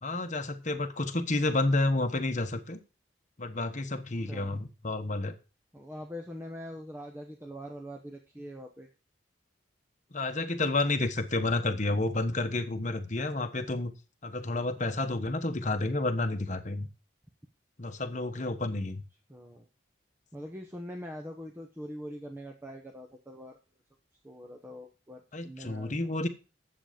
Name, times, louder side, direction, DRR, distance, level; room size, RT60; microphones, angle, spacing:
voice 1, 0.0-2.8 3.4-5.3 10.1-13.9 14.2-16.9 17.8-19.0 25.3-26.3, left 2 dB, 40° left, 7 dB, 1.1 m, -30 dB
voice 2, 4.2-4.5 5.7-8.9 19.3-19.7 20.3-23.6 24.2-25.9, equal, 10° right, 3 dB, 0.9 m, -43 dB
10.0 x 7.7 x 5.1 m, 0.33 s
head